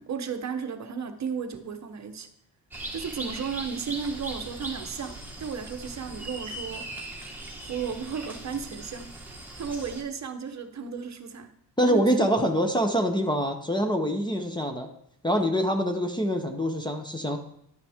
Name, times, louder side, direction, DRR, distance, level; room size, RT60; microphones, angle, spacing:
voice 1, 0.0-2.3 2.9-6.9 7.6-9.1 9.6-11.5 11.9-12.0, right 6 dB, 45° right, 8 dB, 0.8 m, -34 dB
sound 1, 2.7-10.0, right 1 dB, 5° right, 1.4 m, -39 dB
voice 2, 11.8-14.9 15.2-17.4, equal, 10° left, 5 dB, 0.7 m, -25 dB
11.0 x 8.9 x 3.5 m, 0.74 s
wide cardioid pair, 165°, 40 cm